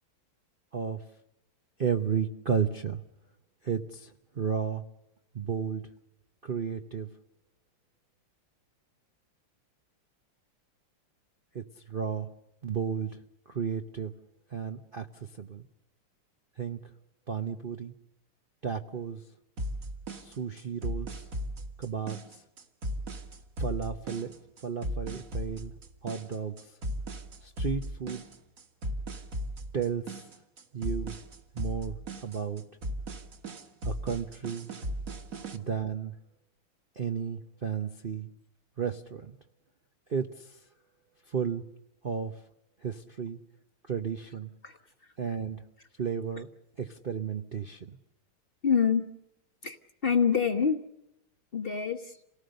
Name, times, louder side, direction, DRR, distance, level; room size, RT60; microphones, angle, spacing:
voice 1, 1.8-3.0 3.6-4.8 5.3-5.8 6.4-7.1 11.5-12.3 12.6-13.2 13.5-14.1 14.5-15.7 16.6-16.9 17.3-17.9 18.6-19.2 20.2-21.2 21.8-22.4 23.6-24.3 24.6-25.7 26.0-26.7 27.4-28.2 29.7-30.1 30.7-31.2 31.5-32.6 33.8-34.7 35.5-36.1 37.0-38.3 38.8-39.4 40.1-40.6 41.3-41.6 42.0-42.4 42.8-43.4 43.9-44.5 45.2-45.6 46.0-46.5 46.8-48.0, right 7 dB, 90° right, 6 dB, 0.4 m, -33 dB
sound 1, 19.6-35.6, equal, 40° right, 1.8 m, -37 dB
voice 2, 48.6-49.1 49.6-49.8 50.0-50.8 51.5-52.2, left 6 dB, 40° left, 7 dB, 0.9 m, -26 dB
28.0 x 18.5 x 6.6 m, 0.83 s
omnidirectional pair, 2.4 m